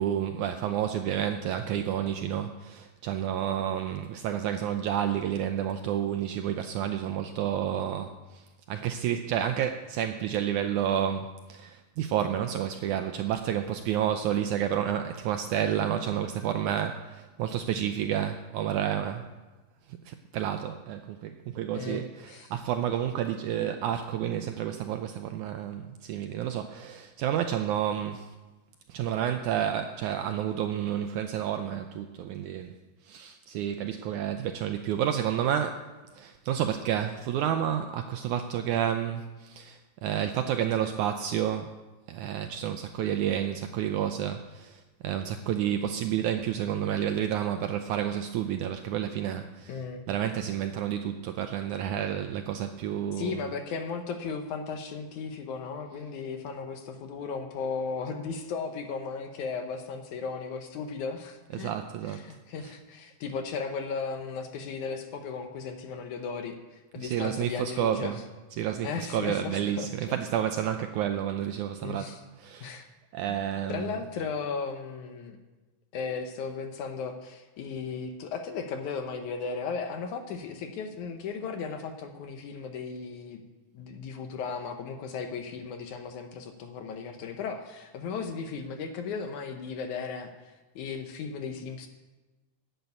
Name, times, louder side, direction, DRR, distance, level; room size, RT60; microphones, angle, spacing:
voice 1, 0.0-19.3 19.9-28.3 28.9-32.8 33.0-35.9 36.1-41.7 42.1-53.5 61.5-62.3 62.6-62.8 67.0-68.2 68.5-72.8 73.1-74.0, right 10 dB, 80° right, 7 dB, 1.8 m, -30 dB
voice 2, 21.7-22.5 49.7-50.1 53.1-61.7 62.0-68.2 68.8-70.1 71.8-72.2 72.6-72.9 73.3-73.4 73.7-75.4 75.9-83.4 83.7-91.9, left 5 dB, 70° left, 6 dB, 2.1 m, -36 dB
11.0 x 9.1 x 8.1 m, 1.2 s
omnidirectional pair, 4.0 m